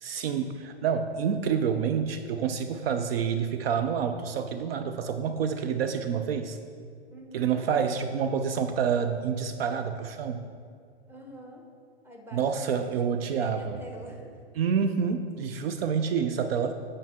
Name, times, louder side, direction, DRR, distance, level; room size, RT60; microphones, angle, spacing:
voice 1, 0.0-6.6 7.3-10.5 12.3-13.8 14.6-16.7, right 7 dB, 65° right, 8 dB, 0.5 m, -28 dB
voice 2, 7.1-7.8 11.1-11.6 12.0-12.9 13.3-14.3, equal, 5° right, 0 dB, 1.1 m, -45 dB
9.4 x 5.4 x 3.6 m, 2.2 s
hypercardioid pair, 100°, 32 cm